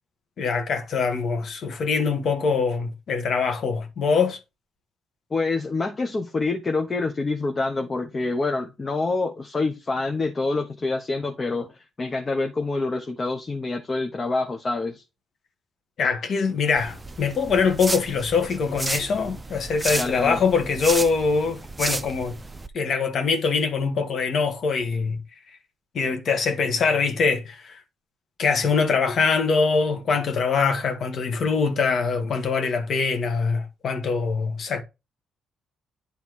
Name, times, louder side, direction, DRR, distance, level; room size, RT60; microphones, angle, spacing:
voice 1, 0.4-4.4 16.0-22.4 22.7-25.2 25.9-27.8 28.4-34.8, left 5 dB, 60° left, 1.7 m, -23 dB
voice 2, 5.3-15.0 19.9-20.4, left 3 dB, 30° left, 1.2 m, -26 dB
sound 1, 16.8-22.7, right 2 dB, 15° right, 0.7 m, -32 dB
9.6 x 3.5 x 4.7 m
cardioid pair, 90°, 0 cm